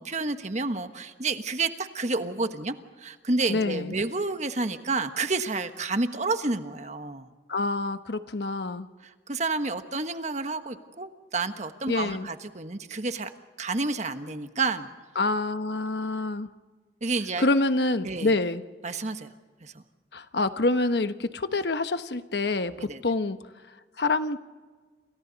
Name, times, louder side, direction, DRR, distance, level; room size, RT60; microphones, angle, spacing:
voice 1, 0.0-7.3 9.0-13.3 13.6-14.9 17.0-17.5 18.0-18.4 18.8-19.3 19.6-19.8 22.8-23.0, right 3 dB, 40° right, 8 dB, 1.3 m, -30 dB
voice 2, 3.5-3.9 7.5-8.9 11.9-12.3 15.2-16.5 17.4-18.6 20.1-23.4 24.0-24.4, left 2 dB, 70° left, 10 dB, 1.1 m, -26 dB
29.0 x 28.0 x 4.1 m, 1.4 s
head